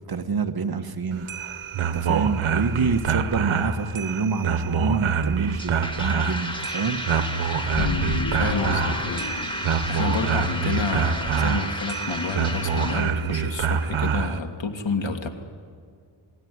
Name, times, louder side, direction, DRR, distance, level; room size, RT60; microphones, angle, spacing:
voice 1, 0.1-1.3 1.8-7.0, right 5 dB, 50° right, 8 dB, 1.4 m, -27 dB
sound 1, 1.1-14.4, right 6 dB, 85° right, 1.4 m, -26 dB
sound 2, 5.5-13.1, left 1 dB, 10° left, 2.2 m, -33 dB
sound 3, 7.6-10.2, left 3 dB, 90° left, 3.8 m, -31 dB
voice 2, 7.8-9.3 9.9-15.3, left 3 dB, 65° left, 4 dB, 2.7 m, -29 dB
28.5 x 19.5 x 9.6 m, 2.1 s
wide cardioid pair, 100°, 48 cm